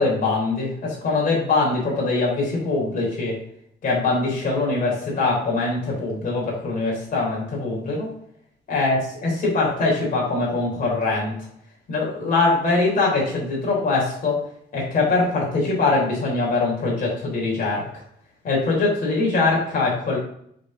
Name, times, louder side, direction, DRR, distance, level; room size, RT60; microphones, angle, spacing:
voice 1, 0.0-3.4 3.8-8.1 8.7-11.4 11.9-14.4 14.7-17.8 18.4-20.2, left 3 dB, 50° left, -4 dB, 3.5 m, -22 dB
10.5 x 4.6 x 3.8 m, 0.69 s
cardioid pair, 145°, 18 cm